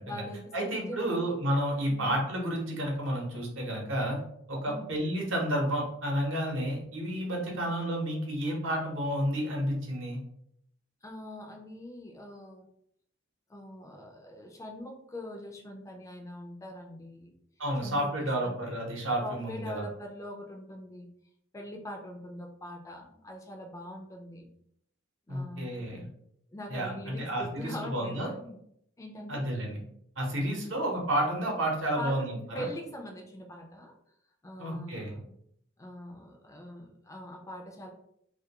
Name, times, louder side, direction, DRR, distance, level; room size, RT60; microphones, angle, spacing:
voice 1, 0.0-1.2 1.9-2.2 4.7-4.9 7.5-7.7 11.0-12.7 13.5-17.3 17.8-18.6 19.2-21.1 21.5-24.5 25.3-26.1 26.5-28.6 29.0-29.4 30.6-30.8 31.9-33.9 34.4-35.3 35.8-37.9, left 1 dB, 15° left, 2 dB, 0.3 m, -43 dB
voice 2, 0.5-4.2 4.5-10.2 17.6-19.8 25.3-26.1 26.7-28.3 29.3-29.8 30.2-32.6 34.6-35.2, right 1 dB, 70° right, -1 dB, 0.8 m, -31 dB
2.3 x 2.2 x 2.8 m, 0.72 s
head